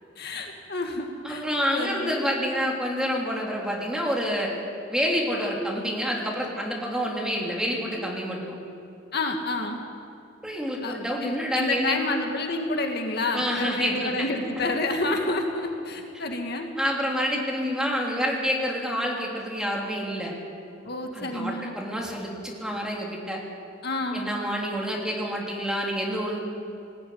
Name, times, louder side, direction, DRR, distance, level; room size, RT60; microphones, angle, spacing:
voice 1, 0.2-1.4 1.7-2.2 9.1-9.8 10.8-16.7 20.8-21.8 23.8-24.3, left 2 dB, 60° left, 3 dB, 2.0 m, -29 dB
voice 2, 1.2-4.5 4.9-8.6 10.4-12.0 13.3-14.3 16.8-20.3 21.1-23.4 24.1-26.4, equal, 5° right, -2 dB, 3.4 m, -28 dB
19.5 x 14.5 x 9.5 m, 2.7 s
head